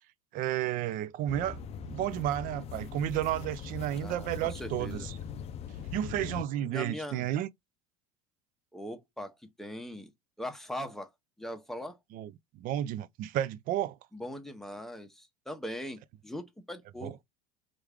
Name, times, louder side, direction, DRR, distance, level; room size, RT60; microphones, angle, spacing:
voice 1, 0.3-1.6 1.9-5.2 5.9-7.5 12.1-12.3 12.6-14.0 17.0-17.1, right 12 dB, 50° right, 0.4 m, -32 dB
sound 1, 1.3-6.4, left 7 dB, 35° left, 0.4 m, -41 dB
voice 2, 4.0-5.1 6.7-7.3 8.7-10.1 10.4-11.1 11.4-12.0 14.1-17.2, equal, ahead, 0.8 m, -40 dB
3.1 x 2.5 x 3.4 m
hypercardioid pair, 85°, 19 cm